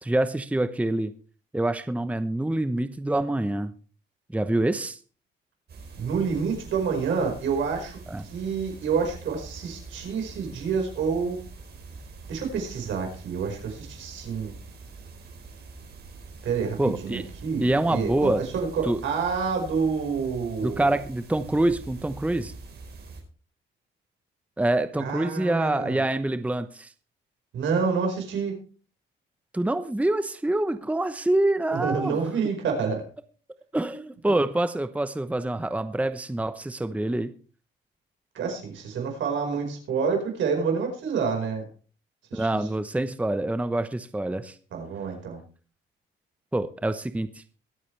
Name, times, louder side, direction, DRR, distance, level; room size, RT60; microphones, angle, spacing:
voice 1, 0.0-1.1 1.5-3.7 4.3-5.0 8.1-8.2 16.8-17.2 17.6-18.4 18.8-19.0 20.6-22.5 24.6-26.9 29.5-32.2 33.7-37.3 42.3-44.6 46.5-47.4, right 1 dB, 5° right, 10 dB, 0.9 m, -26 dB
sound 1, 5.7-23.2, right 3 dB, 55° right, 4.4 m, -44 dB
voice 2, 6.0-8.0 8.3-11.4 12.3-14.5 16.4-20.9 25.0-26.0 27.5-28.5 31.7-33.0 38.3-41.7 42.3-42.5 44.7-45.4, right 5 dB, 75° right, 3 dB, 5.0 m, -28 dB
22.5 x 8.5 x 3.3 m, 0.38 s
cardioid pair, 90°, 20 cm